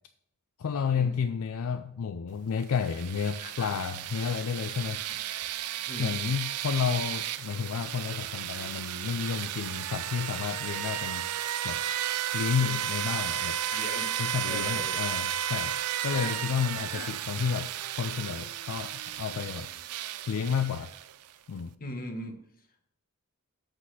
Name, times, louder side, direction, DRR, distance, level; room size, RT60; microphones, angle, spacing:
voice 1, 0.6-5.0 6.0-11.2 11.6-11.8 12.3-13.6 14.2-17.7 18.0-19.7 20.3-20.9 21.5-21.7, left 6 dB, 65° left, 9 dB, 0.4 m, -31 dB
sound 1, 2.6-21.3, right 11 dB, 85° right, 0.4 m, -34 dB
voice 2, 3.4-3.7 5.9-6.1 12.6-12.8 13.1-13.2 13.7-14.2 14.5-15.0 16.1-16.3 16.9-17.1 21.8-22.3, left 2 dB, 40° left, 5 dB, 1.2 m, -39 dB
7.9 x 4.1 x 6.0 m, 0.74 s
head